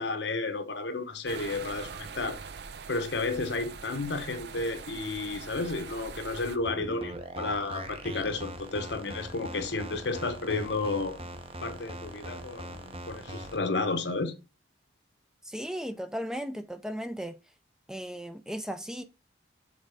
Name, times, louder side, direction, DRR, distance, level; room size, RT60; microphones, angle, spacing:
voice 1, 0.0-2.4 2.9-11.2 11.6-14.3, left 3 dB, 80° left, 1.0 m, -32 dB
sound 1, 1.3-6.6, right 5 dB, 65° right, 0.6 m, -43 dB
sound 2, 6.6-13.6, right 1 dB, 30° right, 0.8 m, -41 dB
voice 2, 15.5-17.4 17.9-19.0, equal, 5° right, 0.4 m, -36 dB
6.6 x 3.6 x 4.8 m
head